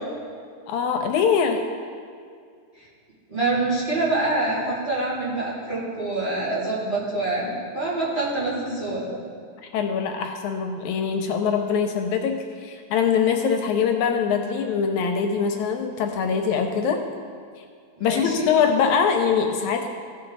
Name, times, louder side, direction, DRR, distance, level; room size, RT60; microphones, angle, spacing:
voice 1, 0.7-1.6 9.7-17.0 18.0-19.9, left 6 dB, 80° left, 5 dB, 2.0 m, -23 dB
voice 2, 3.3-9.2 18.0-18.5, right 2 dB, 15° right, -9 dB, 2.6 m, -26 dB
16.0 x 5.4 x 4.0 m, 2.2 s
omnidirectional pair, 3.4 m